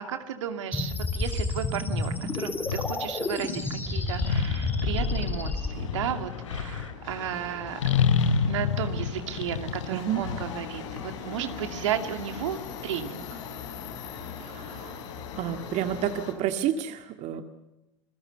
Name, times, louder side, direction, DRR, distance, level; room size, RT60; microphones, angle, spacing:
voice 1, 0.0-7.8 8.5-12.6 12.8-13.4, right 9 dB, 70° right, 8 dB, 2.5 m, -34 dB
sound 1, 0.7-5.7, left 3 dB, 15° left, 6.3 m, -30 dB
Subway metro underground, 1.9-16.3, left 7 dB, 65° left, 6.2 m, -41 dB
sound 2, 2.3-3.0 4.2-6.9 7.8-11.0, left 6 dB, 80° left, 2.5 m, -28 dB
voice 2, 9.9-10.2 14.4-15.0 15.4-17.4, right 10 dB, 45° right, 8 dB, 1.9 m, -30 dB
28.5 x 22.0 x 6.9 m, 0.92 s
hypercardioid pair, 90°, 16 cm